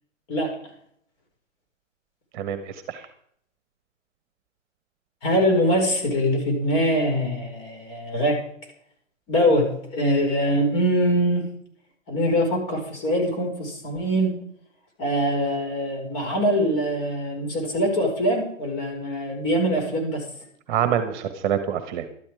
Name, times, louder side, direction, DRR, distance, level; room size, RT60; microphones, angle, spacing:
voice 1, 2.3-3.0 20.7-22.0, right 9 dB, 35° right, 10 dB, 1.3 m, -26 dB
voice 2, 5.2-8.4 9.3-11.4 12.1-14.3 15.0-20.2, equal, 30° left, 2 dB, 5.2 m, -23 dB
12.5 x 12.0 x 4.9 m, 0.67 s
figure-of-eight pair, 130°, 39 cm